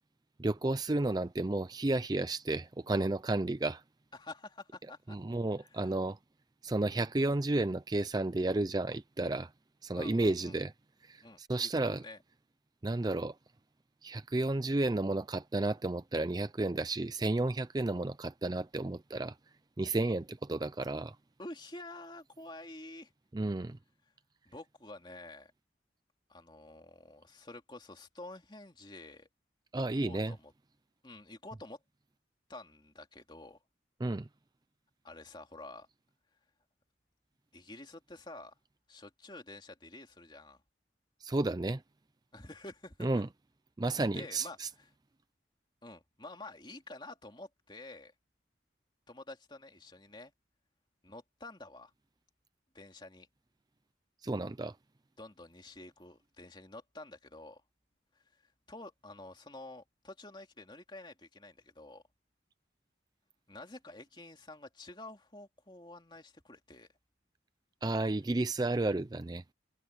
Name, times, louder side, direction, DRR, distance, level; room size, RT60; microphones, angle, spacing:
voice 1, 0.4-3.8 5.1-6.2 6.6-9.5 9.8-10.7 11.0-12.0 12.8-13.4 14.0-19.4 19.8-21.2 23.3-23.8 29.7-30.3 34.0-34.3 41.2-41.8 43.0-43.3 43.8-44.7 54.2-54.8 67.8-69.4, right 2 dB, 20° right, 0.4 m, -32 dB
voice 2, 4.1-5.2 5.6-5.9 9.9-10.6 11.2-12.2 21.4-23.1 24.4-25.5 26.3-29.3 29.7-30.5 31.0-31.8 32.5-33.6 35.0-35.9 37.5-38.5 38.9-40.6 42.3-43.2 44.1-44.6 45.8-48.1 49.1-50.3 51.0-51.9 52.7-53.3 55.2-57.6 58.1-58.2 58.7-62.0 63.5-66.9, left 2 dB, 25° left, 2.9 m, -49 dB
head